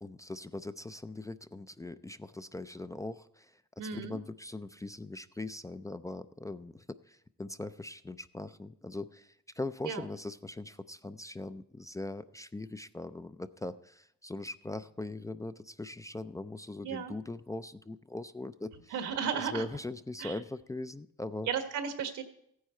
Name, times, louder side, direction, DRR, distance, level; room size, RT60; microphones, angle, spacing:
voice 1, 0.0-19.0 19.4-21.5, left 2 dB, 10° left, 11 dB, 0.4 m, -41 dB
voice 2, 3.8-4.2 9.8-10.0 16.8-17.1 18.9-19.6 20.2-20.3 21.5-22.2, right 7 dB, 85° right, 7 dB, 1.5 m, -34 dB
15.5 x 9.5 x 4.4 m, 0.73 s
cardioid pair, 90°, 30 cm